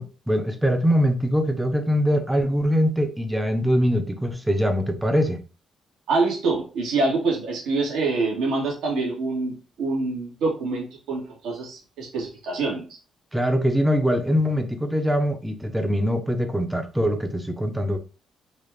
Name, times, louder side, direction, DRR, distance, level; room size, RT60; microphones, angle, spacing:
voice 1, 0.0-5.4 13.3-18.0, equal, 10° right, 0.7 m, -23 dB
voice 2, 6.1-12.8, right 3 dB, 80° right, 1.7 m, -25 dB
4.0 x 2.4 x 3.3 m
cardioid pair, 90°, 0 cm